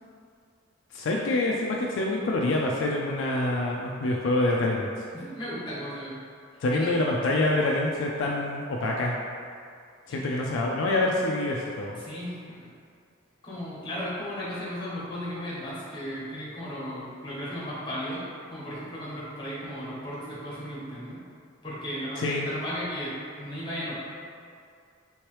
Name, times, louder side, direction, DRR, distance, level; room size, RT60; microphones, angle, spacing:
voice 1, 0.9-4.9 6.6-9.1 10.1-12.0 22.2-22.5, left 2 dB, 65° left, -2 dB, 0.3 m, -26 dB
voice 2, 5.1-6.2 6.8-6.9 12.0-12.7 13.4-21.2 21.6-23.9, equal, 25° left, -8 dB, 1.0 m, -35 dB
3.4 x 3.0 x 3.2 m, 2.3 s
head